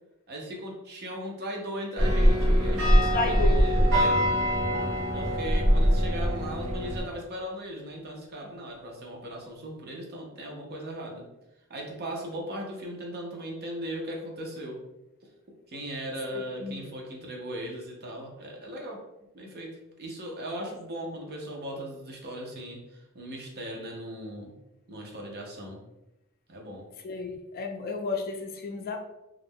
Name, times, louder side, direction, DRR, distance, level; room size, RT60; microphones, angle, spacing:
voice 1, 0.3-4.3 5.1-11.3 11.7-14.8 15.7-19.0 19.3-24.5 24.9-25.8 26.5-26.9, equal, 50° right, 0 dB, 0.6 m, -38 dB
sound 1, 2.0-7.0, equal, 70° right, 0.9 m, -23 dB
voice 2, 3.0-3.7 16.3-16.9 20.6-20.7 27.0-29.0, left 3 dB, 45° left, 3 dB, 0.4 m, -32 dB
sound 2, 4.7-7.0, left 1 dB, 20° right, 1.1 m, -45 dB
2.4 x 2.1 x 3.5 m, 0.94 s
head